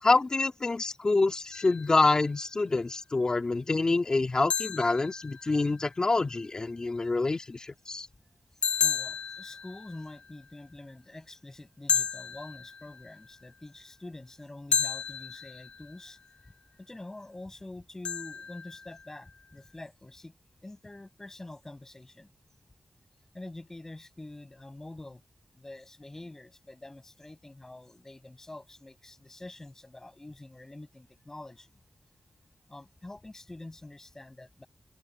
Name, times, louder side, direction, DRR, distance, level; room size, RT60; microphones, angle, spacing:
voice 1, 0.0-8.1, left 3 dB, 40° left, 2.3 m, -26 dB
sound 1, 1.5-2.3 4.5-5.9 8.6-10.4 11.9-13.3 14.7-16.1 18.0-19.3, left 6 dB, 85° left, 0.7 m, -33 dB
voice 2, 8.8-16.2 16.4-16.5 16.8-22.3 23.3-25.2 25.5-31.8 32.7-34.7, left 2 dB, 20° left, 6.7 m, -46 dB
wide cardioid pair, 90°, 2 cm